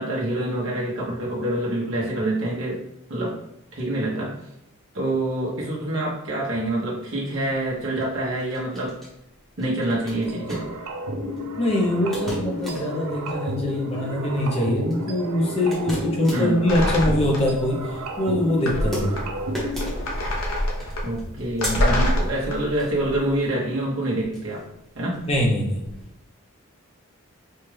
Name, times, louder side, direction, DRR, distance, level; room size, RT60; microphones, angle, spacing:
voice 1, 0.0-2.8 3.1-3.4 3.7-4.3 4.9-9.0 9.6-10.7 16.3-16.6 21.0-24.7 24.9-25.3, right 1 dB, 60° right, -5 dB, 0.9 m, -26 dB
sound 1, 7.3-26.1, equal, ahead, 0.9 m, -39 dB
sound 2, 10.2-19.9, equal, 80° right, 0.6 m, -31 dB
voice 2, 11.6-17.8 18.2-19.2 25.3-25.9, left 1 dB, 25° left, -1 dB, 0.7 m, -23 dB
sound 3, 16.7-17.6 17.9-18.0 18.6-23.2, left 1 dB, 70° left, 0.8 m, -26 dB
4.4 x 2.4 x 3.2 m, 0.82 s
head